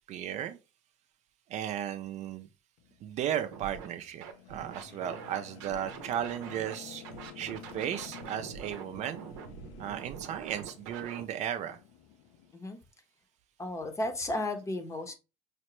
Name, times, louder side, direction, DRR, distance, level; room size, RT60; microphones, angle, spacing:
voice 1, 0.1-0.6 1.5-2.5 3.0-7.0 7.4-9.2 9.8-11.8, right 10 dB, 50° right, 0.5 m, -35 dB
sound 1, 2.8-12.5, left 8 dB, 75° left, 0.6 m, -51 dB
Scratching (performance technique), 3.5-3.9 4.2-6.8 7.0-11.2, right 7 dB, 80° right, 0.7 m, -45 dB
voice 2, 13.6-15.1, left 1 dB, 20° left, 0.7 m, -34 dB
4.9 x 2.1 x 3.0 m
supercardioid pair, 95°, 15 cm